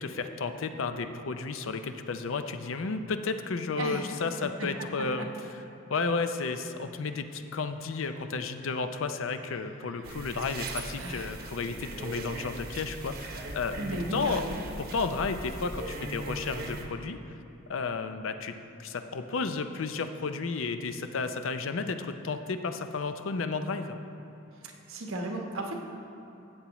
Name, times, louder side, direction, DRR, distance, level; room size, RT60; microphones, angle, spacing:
voice 1, 0.0-5.3 5.9-13.8 14.1-14.4 14.8-17.2 17.7-24.0, left 4 dB, 70° left, 8 dB, 0.5 m, -32 dB
voice 2, 3.8-4.2 4.6-4.7 5.2-5.3 9.8-10.1 10.9-11.5 13.8-14.6 24.6-25.7, right 1 dB, 85° right, 1 dB, 1.2 m, -36 dB
sound 1, 10.0-16.9, right 2 dB, 50° right, 0.9 m, -39 dB
14.0 x 8.2 x 3.0 m, 2.8 s
head